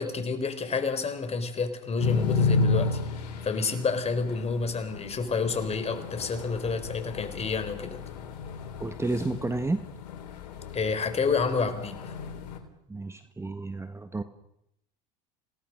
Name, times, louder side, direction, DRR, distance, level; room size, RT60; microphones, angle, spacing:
voice 1, 0.0-8.0 10.7-12.1, left 4 dB, 30° left, 9 dB, 4.2 m, -29 dB
sound 1, 2.0-12.6, left 4 dB, 85° left, 3.7 m, -33 dB
voice 2, 8.8-9.8 12.9-14.2, right 2 dB, 10° right, 9 dB, 1.5 m, -31 dB
27.5 x 18.5 x 6.6 m, 0.78 s
hypercardioid pair, 90°, 21 cm